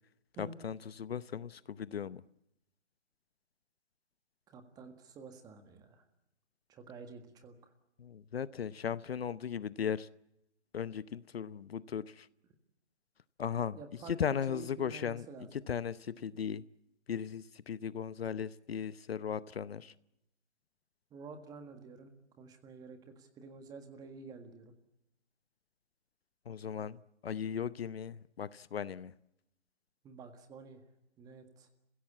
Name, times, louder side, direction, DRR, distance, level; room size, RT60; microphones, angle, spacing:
voice 1, 0.4-2.2 8.0-10.1 10.7-12.3 13.4-13.8 14.1-15.3 15.5-16.6 17.1-19.9 26.5-29.1, left 8 dB, 60° left, 0.8 m, -37 dB
voice 2, 4.5-6.0 6.7-7.7 13.8-14.2 14.5-15.5 21.1-24.7 30.0-30.8 31.2-31.7, right 4 dB, 10° right, 1.7 m, -50 dB
30.0 x 16.0 x 8.4 m
hypercardioid pair, 145°, 34 cm